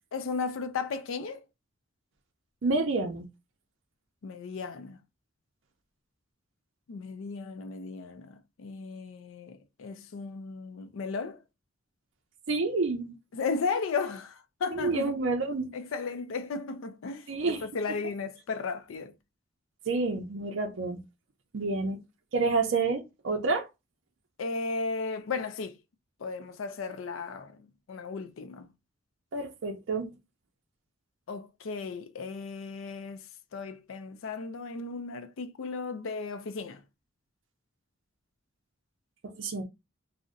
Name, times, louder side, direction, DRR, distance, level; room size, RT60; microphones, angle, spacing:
voice 1, 0.1-1.5 4.2-5.0 6.9-11.4 13.3-15.2 15.7-19.2 24.4-25.8 26.2-28.7 31.3-36.8, left 4 dB, 75° left, 0.4 m, -35 dB
voice 2, 2.6-3.3 12.5-13.2 14.7-15.8 17.3-17.7 19.9-21.0 21.5-22.0 22.3-23.7 29.3-30.1 39.2-39.6, right 3 dB, 65° right, 0.5 m, -29 dB
2.6 x 2.0 x 3.7 m
head